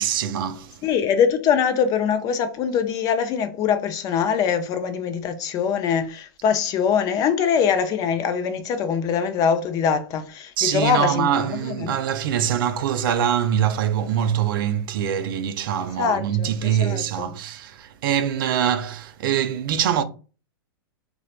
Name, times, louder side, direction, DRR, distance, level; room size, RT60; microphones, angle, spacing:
voice 1, 0.0-0.8 10.6-20.0, right 9 dB, 60° right, 0.4 m, -23 dB
voice 2, 0.8-11.9 16.0-17.3, left 7 dB, 30° left, 0.4 m, -23 dB
3.0 x 2.1 x 2.4 m
hypercardioid pair, 130°, 13 cm